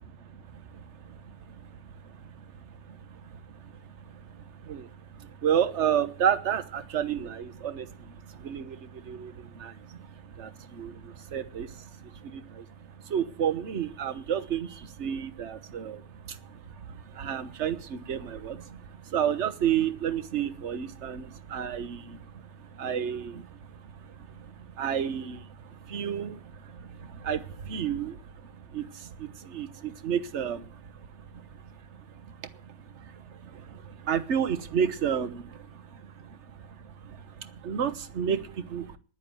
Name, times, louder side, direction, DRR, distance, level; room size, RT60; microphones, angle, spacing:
voice 1, 0.2-39.0, right 8 dB, 45° right, 12 dB, 1.1 m, -33 dB
11.0 x 10.0 x 9.0 m, 0.39 s
omnidirectional pair, 2.2 m